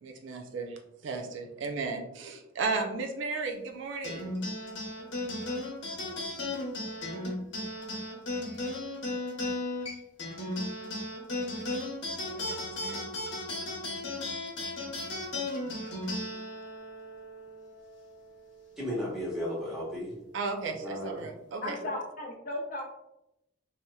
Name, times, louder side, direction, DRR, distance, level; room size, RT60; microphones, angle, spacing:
voice 1, 0.0-0.8 1.0-4.3 12.2-13.1 20.3-21.9, right 4 dB, 70° right, 4 dB, 0.4 m, -35 dB
sound 1, 4.0-18.8, left 1 dB, 65° left, 0.9 m, -36 dB
voice 2, 18.8-20.1 20.7-21.3, equal, ahead, -7 dB, 1.0 m, -34 dB
voice 3, 21.6-22.8, left 2 dB, 45° left, 0 dB, 0.6 m, -35 dB
3.2 x 2.7 x 2.3 m, 0.85 s
head